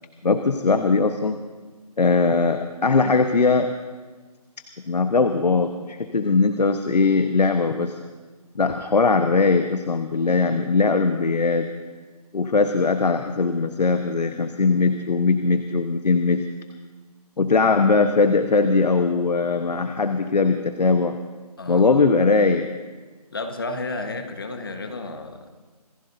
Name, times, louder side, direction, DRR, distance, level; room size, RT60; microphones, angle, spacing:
voice 1, 0.2-1.4 2.0-3.7 4.9-8.0 8.5-11.7 12.3-16.4 17.4-21.1 21.7-22.7, left 4 dB, 90° left, 7 dB, 1.1 m, -20 dB
voice 2, 23.3-25.5, left 2 dB, 35° left, 6 dB, 1.3 m, -32 dB
26.5 x 16.0 x 2.7 m, 1.4 s
hypercardioid pair, 180°, 20 cm